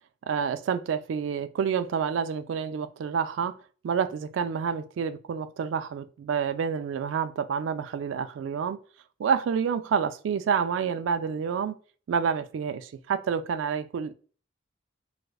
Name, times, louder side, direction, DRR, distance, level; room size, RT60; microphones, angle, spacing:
voice 1, 0.3-3.6 3.8-8.8 9.2-11.8 12.1-14.1, right 6 dB, 75° right, 0.3 m, -28 dB
4.6 x 2.1 x 2.3 m
head